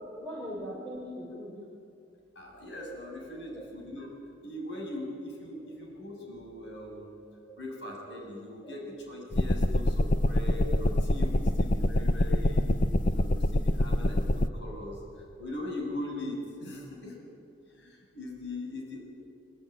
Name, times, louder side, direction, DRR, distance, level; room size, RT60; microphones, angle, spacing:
voice 1, 0.2-1.5 3.5-3.7 5.6-5.7 6.9-7.0 7.5-7.6 8.6-8.7 10.2-10.3, equal, 5° left, -6 dB, 6.4 m, -40 dB
voice 2, 2.4-4.1 4.4-7.2 7.6-12.7 13.0-17.2 17.7-19.0, left 1 dB, 75° left, 0 dB, 6.9 m, -40 dB
sound 1, 9.3-14.5, left 1 dB, 45° left, 0.8 m, -25 dB
25.5 x 23.5 x 9.3 m, 2.4 s
head